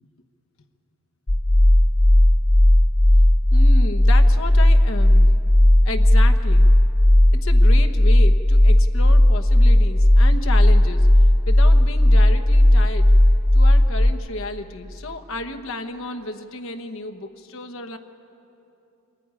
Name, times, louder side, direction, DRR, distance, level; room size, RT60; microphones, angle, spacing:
sound 1, 1.3-14.1, left 1 dB, 20° left, 0.5 m, -14 dB
voice 1, 3.5-5.3 5.8-6.7 7.3-11.1 11.5-13.1 13.5-18.0, left 2 dB, 65° left, 7 dB, 1.1 m, -32 dB
23.5 x 14.5 x 9.7 m, 2.8 s
head